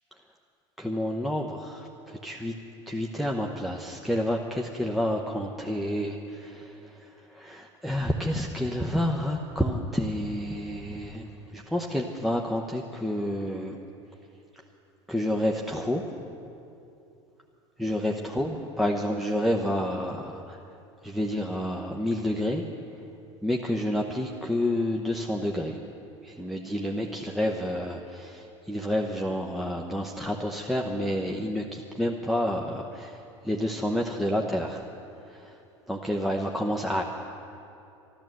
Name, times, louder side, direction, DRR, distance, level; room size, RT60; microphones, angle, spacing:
voice 1, 0.8-2.5 2.9-13.8 15.1-16.0 17.8-20.8 21.0-22.7 23.4-25.8 26.2-34.9 35.2-35.6 35.9-37.0, equal, ahead, 0 dB, 0.8 m, -29 dB
12.5 x 12.0 x 7.7 m, 2.7 s
hypercardioid pair, 90°, 16 cm